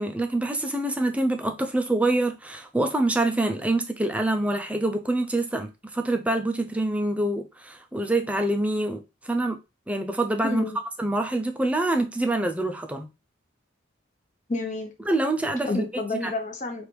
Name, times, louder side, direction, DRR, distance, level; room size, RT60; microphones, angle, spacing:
voice 1, 0.0-9.6 9.9-10.6 11.0-13.1 15.1-15.9 16.2-16.3, right 2 dB, 5° right, 0.4 m, -26 dB
voice 2, 10.4-10.8 14.5-14.9 15.6-16.9, left 2 dB, 40° left, 0.9 m, -30 dB
3.3 x 2.5 x 4.5 m
head